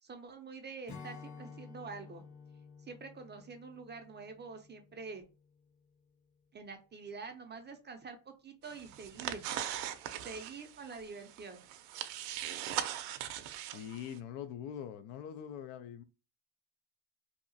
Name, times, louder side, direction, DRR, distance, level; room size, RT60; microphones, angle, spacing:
voice 1, 0.0-2.2 2.8-5.2 6.5-9.5 10.2-11.6, right 4 dB, 25° right, 0.4 m, -46 dB
Strum, 0.9-6.3, left 5 dB, 45° left, 1.0 m, -53 dB
sound 1, 8.6-14.2, right 11 dB, 80° right, 0.5 m, -40 dB
voice 2, 13.7-16.0, left 9 dB, 80° left, 0.6 m, -43 dB
2.8 x 2.3 x 2.6 m
supercardioid pair, 90°, 48 cm